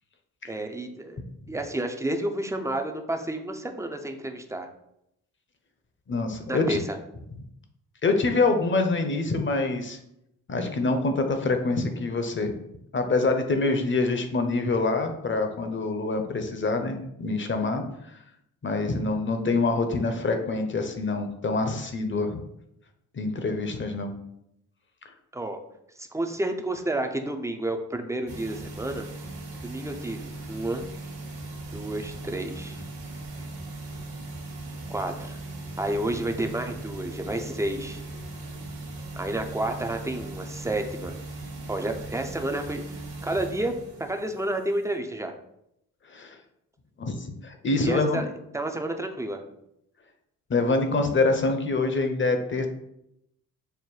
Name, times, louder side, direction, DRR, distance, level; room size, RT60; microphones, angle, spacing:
voice 1, 0.5-1.2 1.5-4.7 6.5-7.0 25.3-25.6 26.0-29.1 29.6-30.8 31.7-32.8 34.9-35.4 35.8-38.0 39.2-41.2 41.7-45.3 47.8-48.3 48.5-49.4, right 1 dB, 5° right, 5 dB, 0.5 m, -30 dB
voice 2, 6.1-6.8 8.0-10.0 10.5-12.5 12.9-17.9 18.6-22.4 23.1-24.1 46.1-46.4 47.0-48.3 50.5-52.7, left 3 dB, 30° left, 6 dB, 0.7 m, -25 dB
sound 1, 28.3-45.0, right 2 dB, 55° right, 1.2 m, -39 dB
5.5 x 2.1 x 3.1 m, 0.79 s
hypercardioid pair, 55°, 41 cm